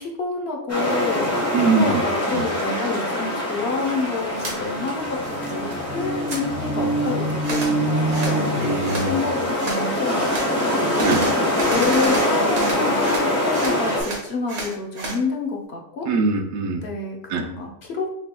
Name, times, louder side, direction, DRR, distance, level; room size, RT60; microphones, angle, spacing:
voice 1, 0.0-1.4 1.7-5.7 5.9-8.7 9.1-16.1 16.8-18.1, left 4 dB, 55° left, 1 dB, 1.0 m, -28 dB
sound 1, 0.7-14.0, left 1 dB, 10° left, 1.3 m, -24 dB
voice 2, 1.5-2.0 2.3-2.5 8.6-9.3 11.0-11.3 16.0-16.8 17.3-17.5, right 4 dB, 80° right, 3 dB, 1.1 m, -22 dB
sound 2, 3.9-4.0 4.3-9.4, right 1 dB, 10° right, 0.9 m, -27 dB
sound 3, 4.4-4.6 5.0-5.7 6.0-6.4 7.4-7.7 8.1-8.4 8.8-9.1 9.6-9.8 10.3-10.5 10.9-13.3 13.5-15.2, right 2 dB, 55° right, 1.5 m, -31 dB
6.6 x 3.3 x 2.2 m, 0.78 s
omnidirectional pair, 1.4 m